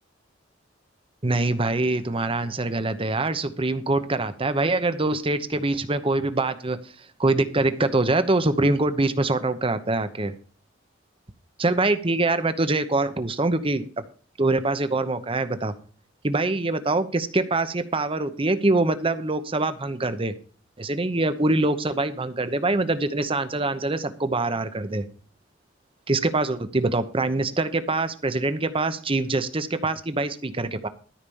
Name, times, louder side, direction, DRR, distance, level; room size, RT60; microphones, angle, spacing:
voice 1, 1.2-6.8 7.2-10.3 11.6-13.8 14.4-15.7 16.2-20.3 20.8-25.1 26.1-30.9, right 2 dB, 30° right, 11 dB, 0.9 m, -24 dB
13.0 x 5.1 x 7.0 m, 0.42 s
head